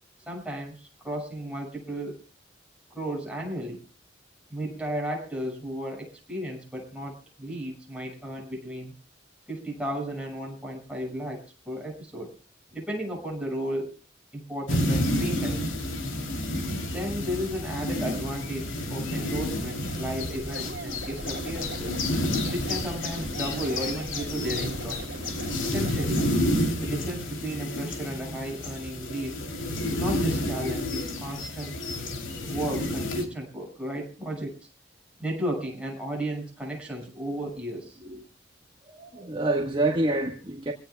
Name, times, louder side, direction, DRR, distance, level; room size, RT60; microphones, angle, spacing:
voice 1, 0.3-2.2 2.9-3.8 4.5-8.9 9.5-12.3 12.7-14.0 14.3-15.6 16.9-22.0 22.5-25.0 25.6-26.3 26.8-29.4 29.8-31.7 32.5-34.6 35.2-38.2, equal, 5° right, 6.4 m, -34 dB
sound 1, 14.7-33.2, left 1 dB, 85° left, 3.2 m, -30 dB
sound 2, 19.0-26.3, right 2 dB, 60° right, 2.7 m, -41 dB
voice 2, 38.9-40.7, right 2 dB, 25° right, 1.5 m, -27 dB
26.0 x 17.5 x 2.3 m
head